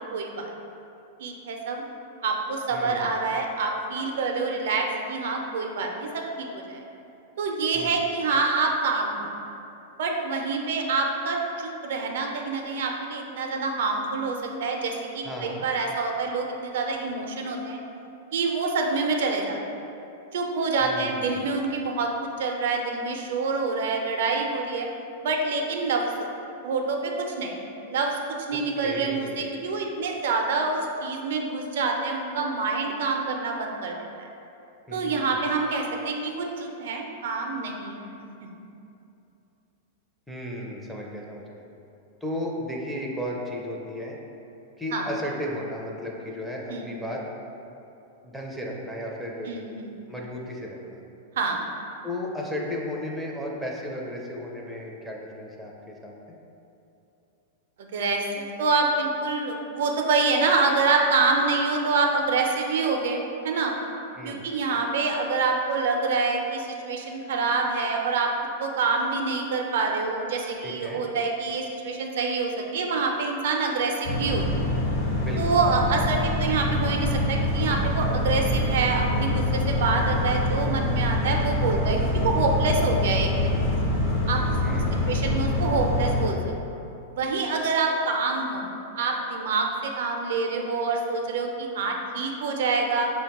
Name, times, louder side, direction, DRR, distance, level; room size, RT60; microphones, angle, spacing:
voice 1, 0.1-0.5 1.2-1.8 2.2-6.8 7.4-9.3 10.0-17.8 18.3-19.6 20.3-24.9 25.2-26.3 26.6-27.6 27.9-28.2 28.5-34.3 34.9-38.0 44.9-45.1 46.7-47.0 49.5-49.9 51.4-51.6 57.9-63.7 64.2-68.3 68.6-74.6 75.4-83.5 84.3-86.4 87.1-88.7 89.0-93.1, right 4 dB, 75° right, 2 dB, 0.4 m, -26 dB
voice 2, 2.7-3.1 7.7-8.0 15.2-15.7 20.8-21.7 28.5-29.5 34.9-35.4 40.3-41.6 42.2-44.2 44.8-47.2 48.2-49.5 50.1-51.0 52.0-56.4 64.2-64.5 70.6-71.0 75.2-75.6 84.6-85.1, left 1 dB, ahead, -3 dB, 0.4 m, -34 dB
sound 1, 74.0-86.3, left 1 dB, 55° left, 1.0 m, -25 dB
4.9 x 2.1 x 2.9 m, 2.8 s
hypercardioid pair, 130°, 0 cm